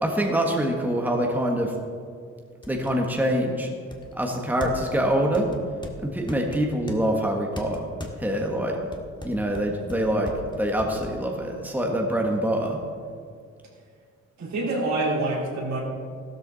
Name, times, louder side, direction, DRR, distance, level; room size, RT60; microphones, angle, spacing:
voice 1, 0.0-1.7 2.7-3.7 4.1-5.5 6.0-7.9 8.2-8.8 9.2-10.3 10.6-12.8, right 1 dB, 5° right, 0 dB, 1.6 m, -25 dB
sound 1, 1.5-1.6 2.1-2.2 2.6-3.0 3.9-5.0 5.3-7.0 7.6-8.2 8.7-11.2, left 1 dB, 15° left, 1.8 m, -39 dB
voice 2, 14.4-15.8, right 2 dB, 65° right, -3 dB, 4.0 m, -26 dB
14.0 x 13.0 x 4.1 m, 2.2 s
cardioid pair, 90°, 30 cm